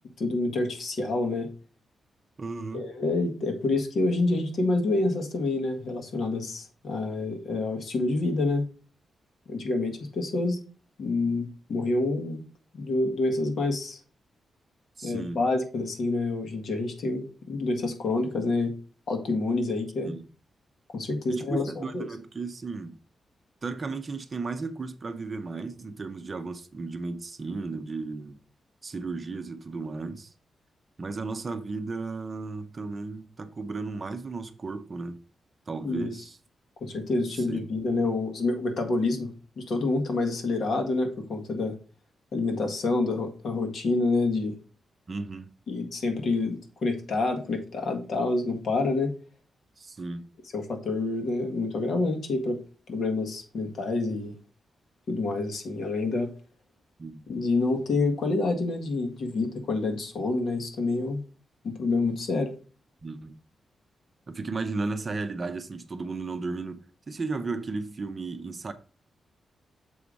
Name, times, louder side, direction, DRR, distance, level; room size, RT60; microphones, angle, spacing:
voice 1, 0.2-1.5 2.7-8.7 9.5-10.6 11.0-12.4 12.7-14.0 15.0-18.8 19.1-20.1 20.9-22.1 35.8-36.2 36.8-41.8 42.3-44.6 45.7-49.1 50.5-52.6 52.9-54.4 55.1-56.3 57.3-61.2 61.6-62.5, left 3 dB, 60° left, 1.6 m, -27 dB
voice 2, 2.4-2.9 15.0-15.4 20.0-20.2 21.3-22.9 23.6-28.4 28.8-30.3 31.0-35.2 35.7-36.4 37.2-37.7 45.1-45.5 49.8-50.3 57.0-57.2 63.0-63.4 64.3-68.7, right 3 dB, 30° right, 0.6 m, -34 dB
7.0 x 4.9 x 3.9 m
wide cardioid pair, 150°, 0 cm